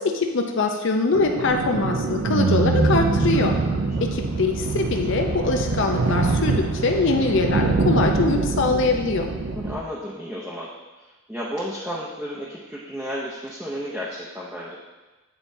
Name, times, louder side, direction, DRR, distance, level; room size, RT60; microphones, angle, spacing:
voice 1, 0.0-3.5 4.1-9.3, left 3 dB, 55° left, 4 dB, 0.6 m, -23 dB
sound 1, 1.1-9.8, right 3 dB, 60° right, 0.5 m, -24 dB
voice 2, 3.6-4.1 9.5-10.7 11.0-14.8, equal, 5° right, -7 dB, 0.6 m, -33 dB
9.2 x 4.2 x 2.7 m, 1.2 s
head